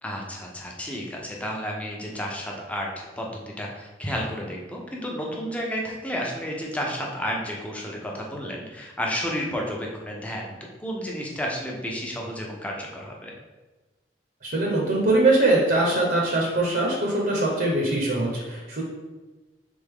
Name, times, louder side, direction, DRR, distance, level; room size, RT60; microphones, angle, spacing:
voice 1, 0.0-3.3 3.6-13.3, equal, 10° left, -2 dB, 0.6 m, -31 dB
voice 2, 14.4-18.8, right 2 dB, 55° right, -2 dB, 0.7 m, -22 dB
3.6 x 3.5 x 3.5 m, 1.2 s
head